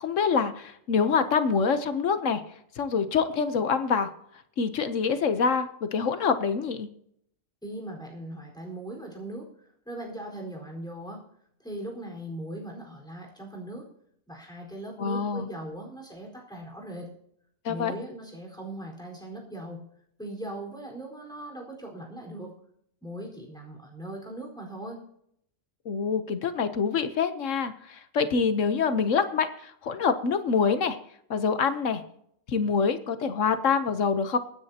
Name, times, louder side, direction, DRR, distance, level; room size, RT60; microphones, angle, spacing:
voice 1, 0.0-2.4 2.8-4.1 4.6-6.9 15.0-15.5 17.6-17.9 25.8-31.0 31.3-32.0 32.5-34.4, left 5 dB, 70° left, 10 dB, 1.3 m, -26 dB
voice 2, 7.6-9.5 9.8-11.2 11.6-13.9 14.3-17.1 17.7-19.8 20.2-22.5 23.0-25.0, right 1 dB, 5° left, -1 dB, 4.4 m, -39 dB
24.5 x 9.8 x 2.9 m, 0.70 s
omnidirectional pair, 1.3 m